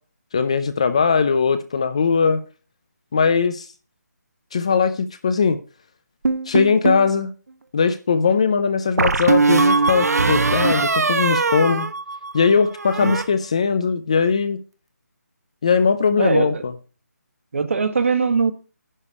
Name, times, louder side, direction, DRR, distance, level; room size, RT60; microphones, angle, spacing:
voice 1, 0.3-2.4 3.1-3.7 4.5-5.6 6.5-7.3 7.7-11.9 12.3-14.6 15.6-16.7, left 5 dB, 20° left, 0.5 m, -19 dB
sound 1, 6.2-7.1 9.0-12.5 12.8-13.2, right 4 dB, 65° right, 1.2 m, -20 dB
voice 2, 16.2-16.6 17.5-18.5, right 5 dB, 50° right, 1.6 m, -21 dB
11.0 x 5.1 x 8.2 m
hypercardioid pair, 175°, 9 cm